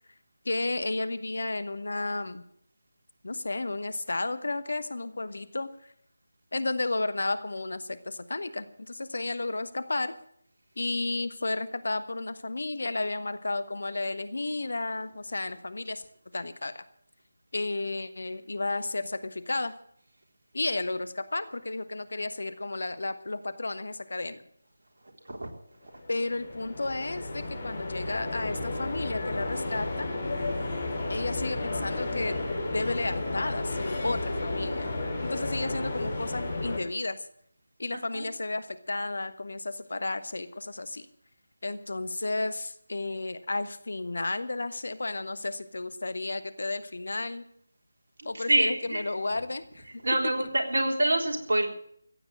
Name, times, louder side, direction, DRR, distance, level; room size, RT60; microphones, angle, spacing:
voice 1, 0.4-2.4 3.2-5.7 6.5-10.2 10.8-16.0 16.3-16.8 17.5-19.7 20.5-24.4 26.1-30.1 31.1-32.4 32.7-34.9 35.2-37.2 37.8-41.1 41.6-47.4 48.2-49.9 50.4-50.5, left 2 dB, 60° left, 12 dB, 1.3 m, -32 dB
sound 1, 25.9-36.8, left 2 dB, 35° left, 5.1 m, -32 dB
voice 2, 48.2-49.0 50.0-51.7, right 1 dB, 55° right, 2 dB, 3.6 m, -26 dB
15.5 x 8.8 x 8.9 m, 0.66 s
figure-of-eight pair, 160°, 0 cm